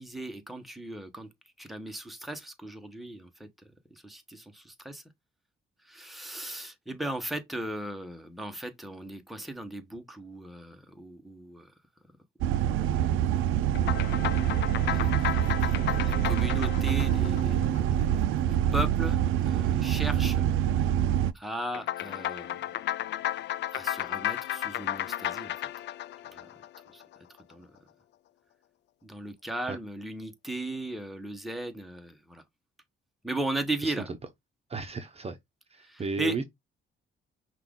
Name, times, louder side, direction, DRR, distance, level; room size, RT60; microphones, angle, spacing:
voice 1, 0.0-1.3 1.6-3.5 3.9-5.0 5.8-11.7 12.4-13.5 14.9-15.3 15.6-15.7 16.0-20.5 20.8-20.9 21.3-22.7 23.7-25.5 26.3-26.5 26.9-27.0 27.3-27.7 29.0-32.4 33.2-34.1 35.8-36.4, right 1 dB, ahead, 1.0 m, -37 dB
sound 1, 12.4-21.3, right 11 dB, 85° right, 0.4 m, -26 dB
sound 2, 13.7-18.4 21.7-27.2, left 13 dB, 60° left, 0.4 m, -34 dB
voice 2, 34.7-35.4 35.7-36.4, right 4 dB, 30° right, 0.8 m, -34 dB
5.7 x 2.5 x 3.6 m
cardioid pair, 90°, 20 cm